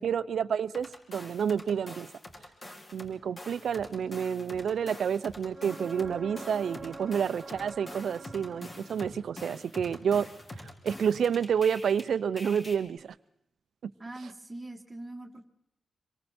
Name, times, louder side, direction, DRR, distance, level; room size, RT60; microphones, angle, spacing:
voice 1, 0.0-2.1 2.9-10.3 10.8-13.1, right 7 dB, 80° right, 15 dB, 0.7 m, -29 dB
sound 1, 0.7-3.1 3.4-12.0 12.4-12.7, left 1 dB, 30° left, 4.5 m, -45 dB
sound 2, 5.5-9.3 13.0-13.1, right 3 dB, 30° right, 1.2 m, -45 dB
voice 2, 14.0-15.5, right 2 dB, 15° right, 3 dB, 2.0 m, -42 dB
26.5 x 23.5 x 4.4 m, 0.81 s
wide cardioid pair, 140°, 0 cm